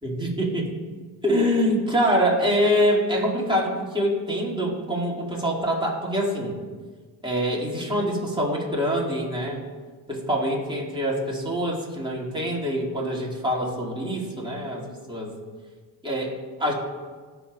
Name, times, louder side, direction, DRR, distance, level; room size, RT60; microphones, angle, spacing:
voice 1, 0.0-0.7 1.2-6.6 7.2-9.6 10.1-15.3 16.0-16.3 16.6-16.7, equal, 10° right, -5 dB, 2.2 m, -25 dB
12.5 x 4.7 x 2.4 m, 1.5 s
supercardioid pair, 45°, 45 cm